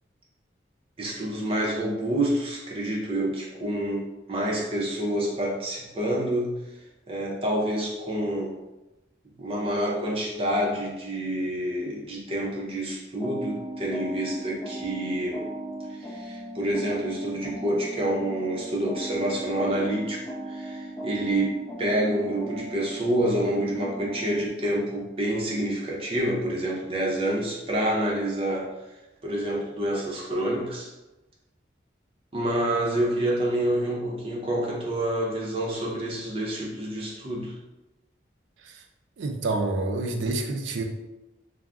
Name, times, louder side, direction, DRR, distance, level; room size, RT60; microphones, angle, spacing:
voice 1, 1.0-6.6 7.1-8.6 9.4-15.5 15.9-28.7 29.2-30.9 32.3-37.6, right 1 dB, 30° right, -4 dB, 0.5 m, -28 dB
sound 1, 13.2-24.5, right 1 dB, 20° left, 0.6 m, -38 dB
voice 2, 39.2-40.8, right 2 dB, 85° right, 4 dB, 0.4 m, -28 dB
2.3 x 2.0 x 3.4 m, 1.0 s
head